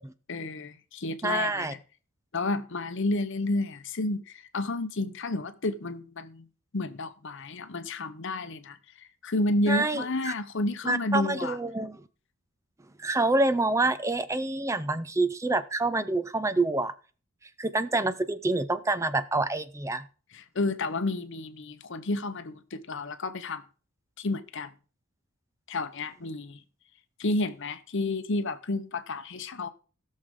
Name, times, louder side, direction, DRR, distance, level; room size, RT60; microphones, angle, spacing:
voice 1, 0.3-1.8 2.3-6.5 6.7-11.6 20.3-23.6 24.2-24.7 25.7-26.6 27.2-29.7, left 2 dB, 60° left, 0.8 m, -31 dB
voice 2, 1.2-1.7 9.7-10.3 10.8-12.0 13.0-16.9 17.6-20.1, right 2 dB, 15° right, 0.5 m, -27 dB
17.0 x 6.5 x 3.7 m
head